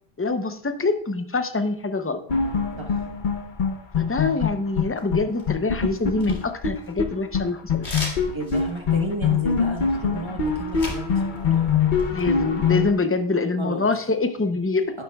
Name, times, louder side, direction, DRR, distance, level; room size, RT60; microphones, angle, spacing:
voice 1, 0.2-2.2 3.9-7.9 12.1-15.0, left 3 dB, 20° left, 8 dB, 0.4 m, -25 dB
sound 1, 2.3-4.8 5.1-5.2 5.5-7.1 7.3-7.4 7.7-12.9, left 6 dB, 50° left, 0.9 m, -23 dB
sound 2, 5.0-5.6 5.9-7.2 7.8-11.1 11.4-12.2, left 2 dB, 85° left, 2.3 m, -36 dB
voice 2, 8.3-11.8 13.6-13.9 14.9-15.0, right 2 dB, 25° right, 1 dB, 1.1 m, -33 dB
11.5 x 9.0 x 2.3 m, 0.67 s
omnidirectional pair, 1.1 m